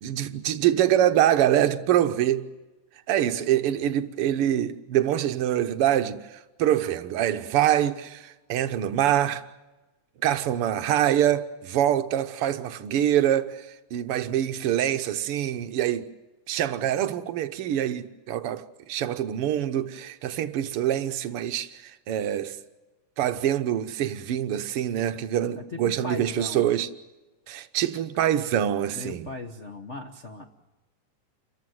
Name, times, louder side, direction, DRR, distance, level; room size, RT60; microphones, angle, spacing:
voice 1, 0.0-2.5 3.1-9.4 10.2-16.1 16.5-22.6 23.2-26.9 27.5-29.3, right 11 dB, 70° right, 1.4 m, -25 dB
voice 2, 25.8-26.7 28.9-30.4, left 2 dB, 80° left, 0.6 m, -37 dB
28.5 x 15.0 x 9.3 m
omnidirectional pair, 3.7 m